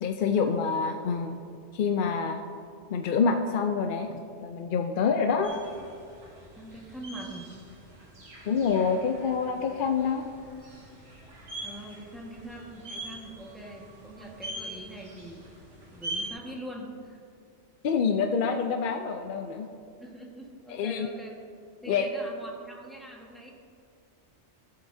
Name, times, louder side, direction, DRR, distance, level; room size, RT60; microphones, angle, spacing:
voice 1, 0.0-1.4 1.7-2.4 2.9-5.6 8.5-10.3 17.8-19.7 20.7-21.1 21.9-22.1, left 5 dB, 60° left, 5 dB, 0.6 m, -27 dB
sound 1, 5.4-16.3, right 1 dB, 65° right, 2.0 m, -43 dB
voice 2, 6.5-7.5 11.6-15.5 15.9-17.2 20.0-21.4 21.8-23.5, right 1 dB, ahead, -3 dB, 1.4 m, -43 dB
15.5 x 7.9 x 2.7 m, 2.4 s
omnidirectional pair, 1.2 m